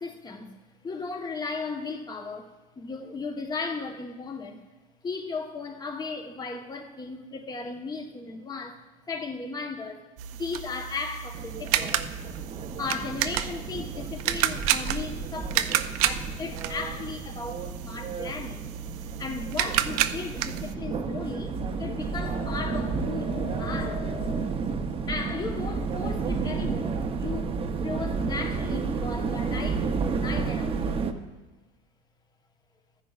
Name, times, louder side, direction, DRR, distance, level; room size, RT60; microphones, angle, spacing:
voice 1, 0.0-4.6 5.0-10.1 10.3-12.0 12.8-18.7 19.0-24.1 25.1-31.0, left 4 dB, 20° left, 1.1 m, -36 dB
sound 1, 10.2-20.7, right 12 dB, 80° right, 0.5 m, -31 dB
sound 2, 11.3-31.1, right 5 dB, 30° right, 0.8 m, -32 dB
sound 3, 17.9-26.9, left 6 dB, 70° left, 2.6 m, -43 dB
14.5 x 10.0 x 2.4 m
supercardioid pair, 110°, 18 cm